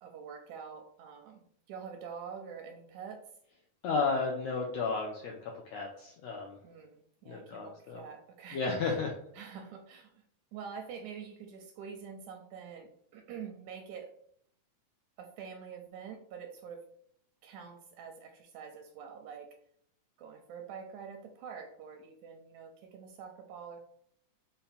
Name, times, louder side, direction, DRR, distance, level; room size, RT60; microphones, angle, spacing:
voice 1, 0.0-3.2 6.6-9.0 9.4-10.2 10.5-14.1 15.2-16.9 17.4-19.5 20.2-23.8, right 6 dB, 80° right, 4 dB, 1.8 m, -46 dB
voice 2, 3.8-6.6 7.3-8.0 8.5-9.1, left 4 dB, 80° left, -1 dB, 1.5 m, -33 dB
5.4 x 2.2 x 4.2 m, 0.67 s
omnidirectional pair, 3.7 m